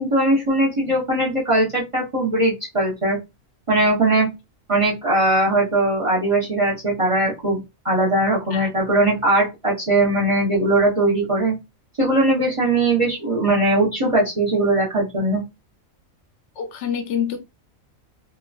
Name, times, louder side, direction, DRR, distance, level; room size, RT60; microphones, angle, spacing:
voice 1, 0.0-3.2 3.7-4.3 4.7-11.5 12.0-15.4, right 2 dB, 30° right, 0.6 m, -20 dB
voice 2, 16.6-17.4, left 8 dB, 65° left, 0.8 m, -26 dB
3.0 x 2.3 x 2.4 m
omnidirectional pair, 1.4 m